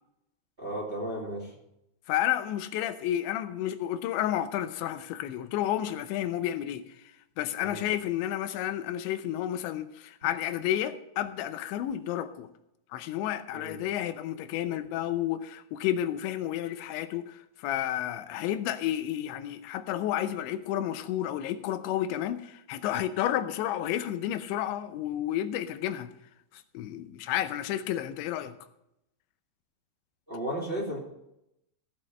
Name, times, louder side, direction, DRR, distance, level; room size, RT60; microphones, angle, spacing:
voice 1, 0.6-1.5 7.6-7.8 13.5-13.8 30.3-31.0, right 1 dB, 15° right, 2.0 m, -34 dB
voice 2, 2.1-7.0 7.4-12.5 12.9-26.1 26.5-28.6, left 12 dB, 90° left, 3.1 m, -31 dB
16.0 x 6.5 x 6.2 m
omnidirectional pair, 5.1 m